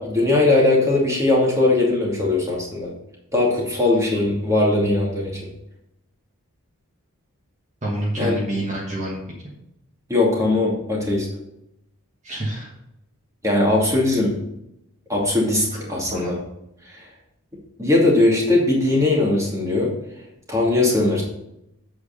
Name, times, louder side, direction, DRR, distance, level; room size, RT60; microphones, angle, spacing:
voice 1, 0.0-2.9 3.3-5.4 8.2-8.3 10.1-11.3 13.4-14.4 15.1-16.3 16.9-17.0 17.8-19.9 20.5-21.2, left 2 dB, 15° right, -3 dB, 2.5 m, -19 dB
voice 2, 7.8-9.2 12.2-12.7 16.0-16.4, right 1 dB, 35° right, -4 dB, 1.6 m, -27 dB
8.4 x 4.8 x 6.6 m, 0.83 s
head